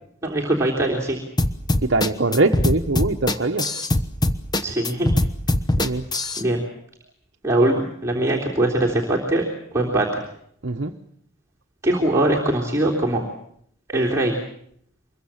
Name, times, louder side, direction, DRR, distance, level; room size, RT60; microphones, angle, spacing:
voice 1, 0.2-1.2 4.6-5.1 6.4-6.6 7.4-10.2 11.8-13.2 13.9-14.4, right 1 dB, 15° right, -3 dB, 3.4 m, -22 dB
sound 1, 1.4-6.4, left 1 dB, 20° left, 1.1 m, -21 dB
voice 2, 1.8-3.8 5.8-6.1 10.6-11.0 13.1-13.2, right 2 dB, 55° right, 3 dB, 1.1 m, -22 dB
25.0 x 22.5 x 7.3 m, 0.69 s
head